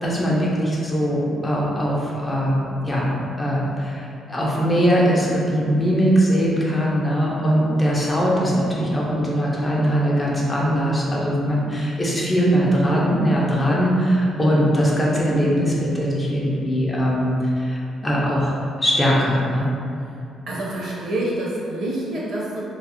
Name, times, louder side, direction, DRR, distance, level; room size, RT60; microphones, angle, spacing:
voice 1, 0.0-17.8 18.0-19.7, equal, 20° left, -5 dB, 0.5 m, -21 dB
voice 2, 20.5-22.7, right 1 dB, 65° right, -5 dB, 0.6 m, -27 dB
2.4 x 2.0 x 2.8 m, 2.5 s
cardioid pair, 90°, 0 cm